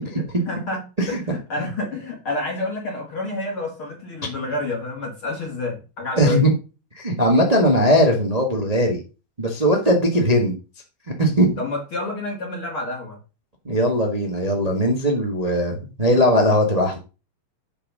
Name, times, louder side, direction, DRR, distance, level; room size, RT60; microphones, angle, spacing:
voice 1, 0.2-6.5 11.6-13.2, left 2 dB, 40° left, -1 dB, 2.4 m, -29 dB
voice 2, 6.2-6.5 6.9-9.0 9.4-10.5 11.2-11.5 13.6-17.0, equal, 45° right, 1 dB, 0.5 m, -19 dB
8.4 x 5.6 x 6.3 m, 0.32 s
omnidirectional pair, 4.3 m